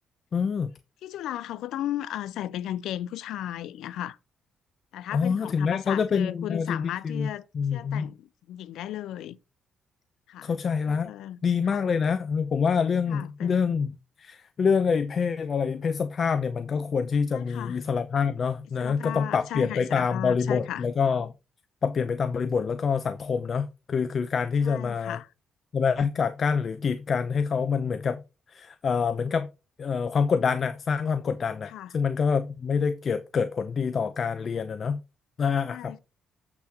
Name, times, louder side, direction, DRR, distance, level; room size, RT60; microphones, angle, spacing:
voice 1, 0.3-0.7 5.1-8.1 10.4-11.1 11.4-13.9 14.2-21.3 21.8-25.2 25.7-28.2 28.5-29.5 29.8-35.0 35.4-36.0, left 6 dB, 45° left, 0.7 m, -26 dB
voice 2, 1.0-4.2 4.9-7.5 7.7-9.4 10.3-10.5 10.9-11.4 11.7-11.8 13.1-13.8 17.3-17.8 18.8-20.8 24.6-25.3 31.7-31.9 35.7-36.0, left 12 dB, 85° left, 0.5 m, -35 dB
8.1 x 6.0 x 4.2 m
cardioid pair, 90°, 0 cm